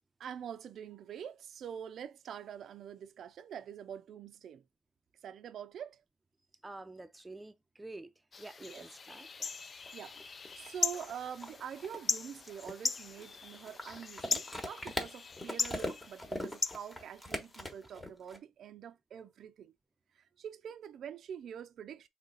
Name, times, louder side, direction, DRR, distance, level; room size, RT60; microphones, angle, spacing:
voice 1, 0.2-4.6 5.2-6.0 8.7-8.9 9.9-10.2 10.5-19.7 20.1-22.1, right 8 dB, 65° right, 0.4 m, -45 dB
voice 2, 6.6-8.1 8.4-9.5, right 2 dB, 15° right, 0.6 m, -48 dB
sound 1, 8.3-17.7, left 5 dB, 40° left, 0.4 m, -39 dB
sound 2, 9.9-10.0 10.2-18.4, left 1 dB, 15° left, 1.2 m, -41 dB
3.8 x 3.2 x 3.9 m
cardioid pair, 90°, 0 cm